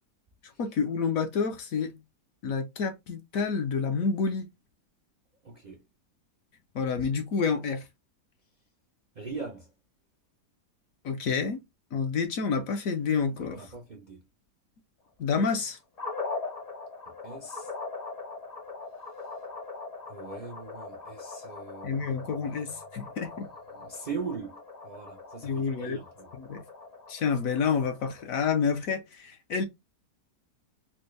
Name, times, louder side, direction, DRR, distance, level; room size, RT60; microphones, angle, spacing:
voice 1, 0.6-2.0 2.4-4.5 6.7-7.9 11.0-11.6 11.9-13.6 15.2-15.8 21.8-23.5 25.4-26.0 26.4-26.6 27.1-29.6, left 5 dB, 65° left, 1.0 m, -29 dB
voice 2, 5.4-5.8 7.0-7.1 9.1-9.7 13.4-14.3 17.1-17.7 20.1-22.3 23.0-23.4 23.7-26.3, right 4 dB, 75° right, 0.4 m, -41 dB
sound 1, 16.0-28.2, left 3 dB, 35° left, 0.7 m, -41 dB
4.3 x 2.2 x 3.1 m
omnidirectional pair, 1.8 m